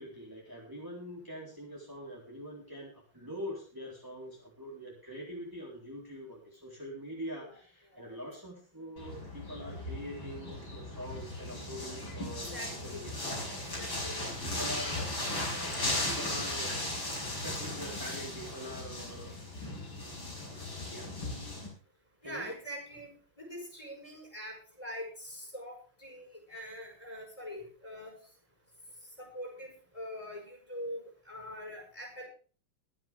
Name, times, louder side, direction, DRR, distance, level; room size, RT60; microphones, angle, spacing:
voice 1, 0.0-13.2 14.2-15.0 15.4-16.8 17.2-19.3 20.9-21.1 22.2-22.6, equal, 10° right, -4 dB, 3.4 m, -44 dB
sound 1, 9.0-21.7, left 1 dB, 85° left, 7.3 m, -37 dB
voice 2, 12.5-13.0 13.8-14.3 22.2-23.1 23.4-28.2 29.2-29.7 29.9-32.3, equal, 15° left, 1 dB, 5.1 m, -43 dB
23.0 x 7.8 x 3.5 m, 0.38 s
omnidirectional pair, 2.1 m